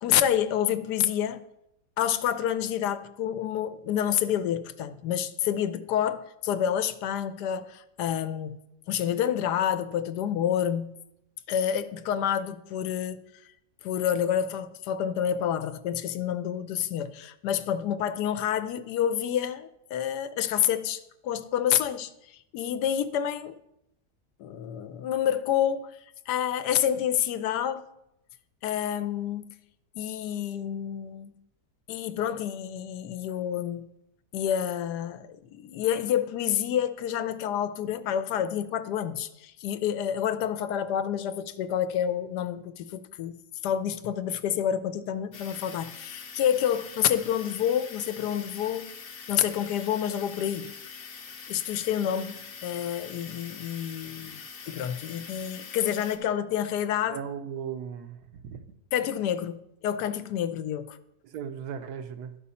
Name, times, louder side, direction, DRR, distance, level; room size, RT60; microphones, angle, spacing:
voice 1, 0.0-1.4 2.0-8.6 8.9-10.9 11.5-13.2 13.8-23.5 24.4-25.9 26.3-27.9 28.6-29.5 30.0-31.3 31.9-33.9 34.3-43.4 43.6-48.9 49.3-50.7 51.5-54.4 54.7-57.2 58.9-61.0, left 10 dB, 85° left, 1.2 m, -28 dB
sound 1, 45.3-56.2, left 6 dB, 50° left, 0.7 m, -44 dB
voice 2, 57.1-58.6 61.2-62.4, right 8 dB, 80° right, 1.2 m, -37 dB
11.5 x 5.4 x 4.1 m
omnidirectional pair, 1.7 m